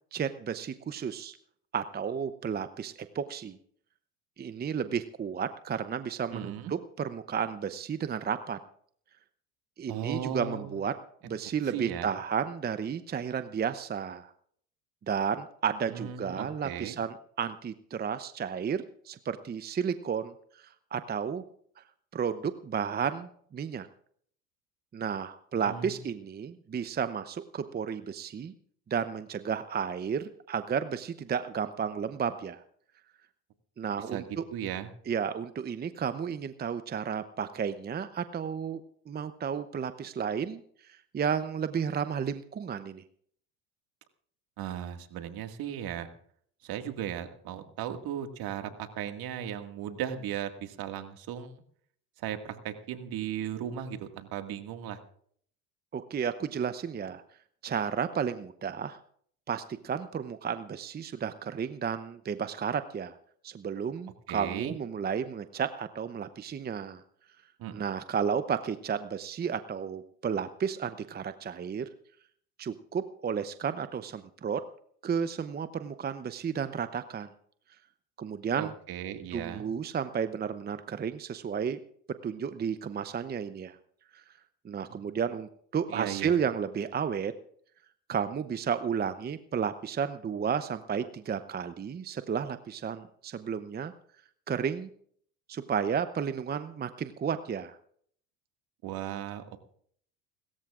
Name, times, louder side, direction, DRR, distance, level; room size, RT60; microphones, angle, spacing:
voice 1, 0.1-1.4 1.7-3.6 4.4-8.6 9.8-10.9 11.2-14.3 15.1-21.4 21.8-21.9 22.1-23.9 24.9-28.5 28.9-32.6 33.8-34.4 35.1-38.8 39.1-43.0 55.9-57.2 57.6-59.0 59.5-63.2 63.4-67.0 67.7-71.8 72.6-74.6 75.0-77.3 78.2-78.7 79.3-81.8 82.2-83.8 84.1-84.2 84.6-87.3 88.1-93.9 94.5-94.9 95.5-97.8, right 7 dB, 20° right, 11 dB, 0.7 m, -32 dB
voice 2, 6.3-6.7 9.9-10.8 11.6-12.1 15.9-17.0 25.7-26.0 34.1-34.9 44.6-46.1 46.6-51.5 52.2-55.0 64.3-64.8 67.6-67.8 78.6-79.7 85.9-86.3 98.8-99.6, right 9 dB, 55° right, 6 dB, 2.0 m, -36 dB
29.5 x 14.0 x 2.5 m, 0.62 s
hypercardioid pair, 80°, 44 cm